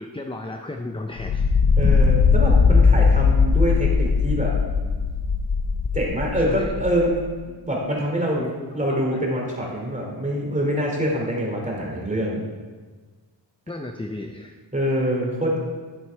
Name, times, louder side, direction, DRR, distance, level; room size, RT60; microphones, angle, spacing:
voice 1, 0.0-1.5 6.4-6.7 8.4-9.2 13.7-14.6 15.1-15.3, left 2 dB, 15° left, 4 dB, 0.5 m, -34 dB
sound 1, 1.2-7.2, left 5 dB, 65° left, 0.7 m, -19 dB
voice 2, 1.8-4.6 5.9-7.2 7.4-8.4 8.7-12.4 14.7-15.6, equal, 15° right, -2 dB, 2.6 m, -25 dB
sound 2, 1.8-6.6, right 1 dB, 35° right, 1.6 m, -36 dB
11.0 x 6.2 x 4.5 m, 1.4 s
wide cardioid pair, 90°, 42 cm